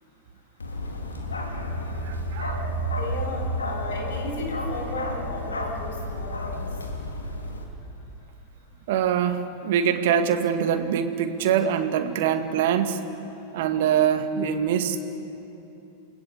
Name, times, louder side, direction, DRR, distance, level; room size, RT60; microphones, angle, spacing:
Bark, 0.6-7.6, equal, 75° left, 3.0 m, -31 dB
voice 1, 2.0-2.7 8.9-13.1 13.5-15.0, right 8 dB, 55° right, 8 dB, 2.0 m, -24 dB
voice 2, 2.9-6.7, left 2 dB, 60° left, 2 dB, 6.8 m, -35 dB
29.0 x 20.5 x 8.7 m, 2.9 s
figure-of-eight pair, 90°, 0 cm